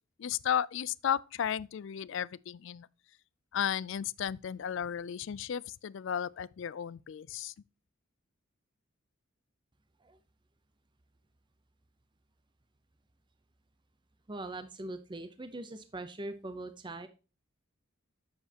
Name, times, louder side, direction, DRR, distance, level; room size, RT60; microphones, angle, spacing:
voice 1, 0.2-2.9 3.5-7.5, left 9 dB, 60° left, 0.3 m, -34 dB
voice 2, 14.3-17.1, right 2 dB, 20° right, 0.6 m, -41 dB
7.8 x 6.9 x 2.8 m
head